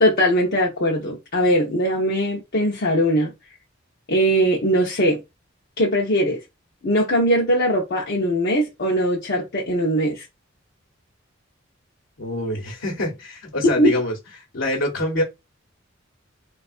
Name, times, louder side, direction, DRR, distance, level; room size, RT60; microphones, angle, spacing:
voice 1, 0.0-3.3 4.1-5.2 5.8-6.4 6.8-10.2 13.6-13.9, equal, 55° left, 0.6 m, -20 dB
voice 2, 12.2-14.2 14.5-15.2, left 1 dB, 75° left, 1.0 m, -25 dB
3.4 x 2.3 x 2.4 m
head